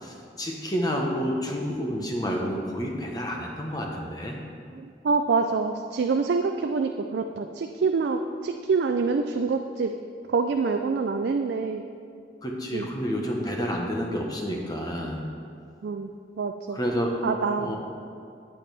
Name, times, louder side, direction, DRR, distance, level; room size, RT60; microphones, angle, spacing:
voice 1, 0.0-4.4 12.4-15.2 16.7-17.1 17.6-17.8, equal, 20° left, 0 dB, 0.9 m, -29 dB
voice 2, 4.7-9.9 10.3-11.8 12.7-12.9 15.8-16.1 16.4-16.8 17.2-17.8, right 4 dB, 70° right, 5 dB, 0.4 m, -26 dB
8.6 x 8.6 x 3.4 m, 2.4 s
head